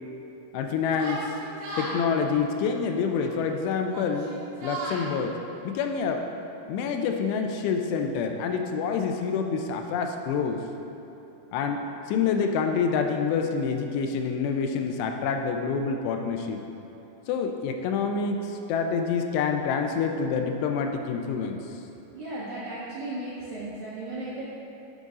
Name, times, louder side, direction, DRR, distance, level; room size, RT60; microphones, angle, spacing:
voice 1, 0.5-1.3 1.8-4.3 4.6-5.4 5.6-6.3 6.7-10.6 11.5-16.6 17.3-21.6, left 5 dB, 85° left, 4 dB, 2.7 m, -27 dB
Yell, 0.9-2.0 3.0-3.4 3.8-5.0, right 2 dB, 60° right, 2.9 m, -36 dB
voice 2, 22.1-24.4, right 2 dB, 90° right, -8 dB, 1.7 m, -35 dB
11.0 x 5.3 x 3.6 m, 2.9 s
omnidirectional pair, 4.9 m